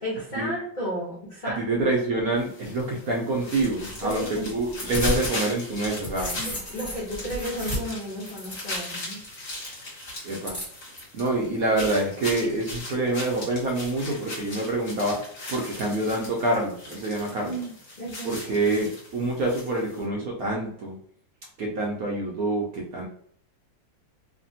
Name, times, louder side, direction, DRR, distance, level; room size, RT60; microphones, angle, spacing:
voice 1, 0.0-1.8 4.0-4.9 6.3-9.2 17.3-18.4, equal, 90° left, -7 dB, 0.4 m, -34 dB
voice 2, 1.6-6.4 10.2-10.6 11.1-15.2 15.5-17.5 18.2-21.0 21.6-23.1, right 2 dB, 70° right, -2 dB, 0.9 m, -26 dB
sound 1, 2.4-20.0, left 1 dB, 45° left, 1.4 m, -39 dB
sound 2, 3.6-5.4 5.7-9.0 10.4-11.0, equal, 15° left, 0.9 m, -34 dB
3.3 x 2.1 x 2.6 m, 0.64 s
omnidirectional pair, 2.1 m